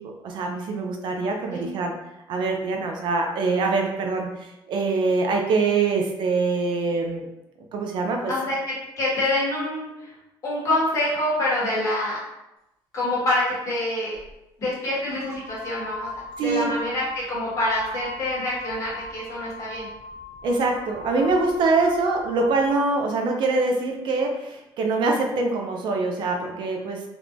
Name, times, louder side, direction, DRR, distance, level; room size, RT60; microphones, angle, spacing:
voice 1, 0.0-1.9 2.3-7.3 7.7-8.3 16.4-16.7 20.4-27.0, right 3 dB, 60° right, 2 dB, 0.5 m, -24 dB
voice 2, 1.5-1.8 8.3-10.1 10.4-12.2 12.9-14.2 14.6-16.1 16.4-19.9, left 1 dB, 35° left, -6 dB, 1.4 m, -26 dB
sound 1, 14.1-14.3 15.1-22.8, left 2 dB, 80° right, 1.3 m, -40 dB
3.5 x 3.0 x 2.5 m, 0.92 s
cardioid pair, 160°, 9 cm